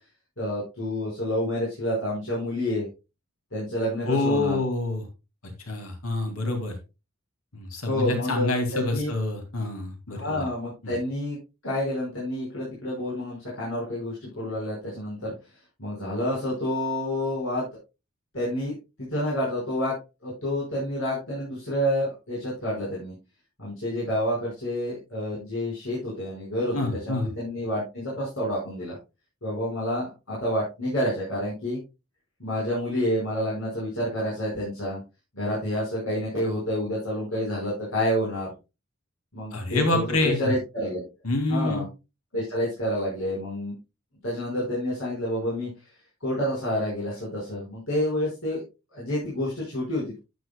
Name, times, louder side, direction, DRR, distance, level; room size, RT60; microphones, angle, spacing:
voice 1, 0.4-2.9 3.5-4.6 7.8-9.1 10.1-11.4 11.6-15.3 15.8-17.7 18.3-18.7 19.0-19.9 20.2-23.1 23.6-26.8 27.0-29.0 29.4-31.8 32.4-35.0 35.3-38.5 39.3-41.0 41.5-41.9 42.3-43.7 44.2-45.7 46.2-48.6 48.9-50.2, left 1 dB, 70° left, -7 dB, 5.4 m, -28 dB
voice 2, 4.0-5.0 5.7-6.7 7.5-10.4 10.8-10.9 26.7-27.3 39.5-40.4 41.2-41.8, left 2 dB, 90° left, 4 dB, 2.6 m, -27 dB
12.0 x 9.6 x 2.3 m, 0.27 s
head